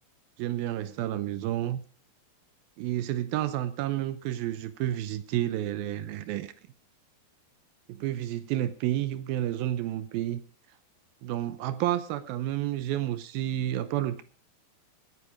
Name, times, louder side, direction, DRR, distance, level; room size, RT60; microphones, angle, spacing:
voice 1, 0.4-1.8 2.8-6.5 7.9-10.4 11.2-14.2, right 13 dB, 75° right, 13 dB, 2.3 m, -30 dB
17.0 x 9.6 x 5.0 m, 0.41 s
omnidirectional pair, 4.9 m